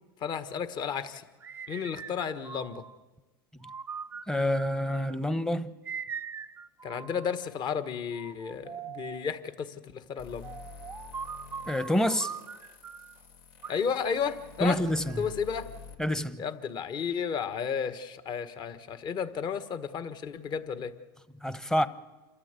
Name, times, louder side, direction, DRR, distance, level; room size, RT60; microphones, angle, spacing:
voice 1, 0.2-1.2 1.7-2.8 6.8-10.5 13.7-14.8 15.2-15.7 16.4-20.9, left 7 dB, 35° left, 1.5 m, -33 dB
sound 1, 1.4-3.0 3.6-5.2 5.8-7.5 8.1-9.3 10.4-13.2 13.6-15.4, right 6 dB, 20° right, 0.7 m, -42 dB
voice 2, 4.3-5.7 11.7-12.3 14.6-15.2 16.0-16.4 21.4-21.9, equal, 5° left, 1.0 m, -27 dB
sound 2, 10.2-15.9, left 5 dB, 80° left, 4.1 m, -49 dB
27.5 x 13.5 x 8.3 m
supercardioid pair, 115°, 12 cm